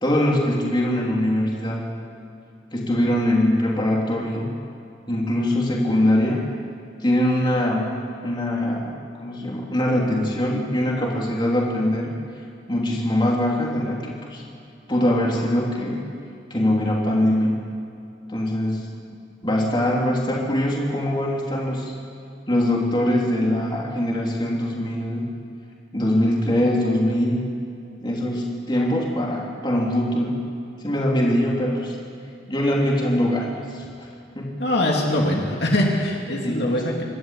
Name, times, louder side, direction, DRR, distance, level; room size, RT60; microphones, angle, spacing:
voice 1, 0.0-1.9 2.7-4.5 5.1-6.5 7.0-7.9 8.2-12.1 12.7-14.4 14.9-16.0 16.5-17.6 18.3-18.9 19.4-21.9 22.5-25.3 25.9-27.5 28.0-30.4 30.8-32.0 32.5-34.1 34.3-34.5 36.4-37.0, left 1 dB, 25° left, -2 dB, 3.1 m, -22 dB
voice 2, 34.6-37.0, left 1 dB, 60° left, -1 dB, 2.8 m, -22 dB
27.0 x 12.5 x 8.4 m, 2.6 s
head